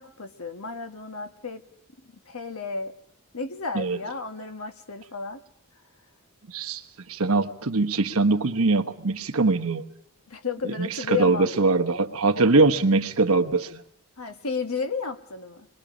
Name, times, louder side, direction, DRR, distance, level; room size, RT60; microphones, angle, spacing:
voice 1, 0.0-1.6 2.2-2.9 3.3-5.4 10.3-11.5 14.2-15.7, left 5 dB, 70° left, 7 dB, 1.4 m, -32 dB
voice 2, 6.5-6.8 7.1-9.8 10.6-13.8, right 3 dB, 75° right, 5 dB, 1.2 m, -22 dB
27.0 x 22.0 x 5.1 m, 0.69 s
head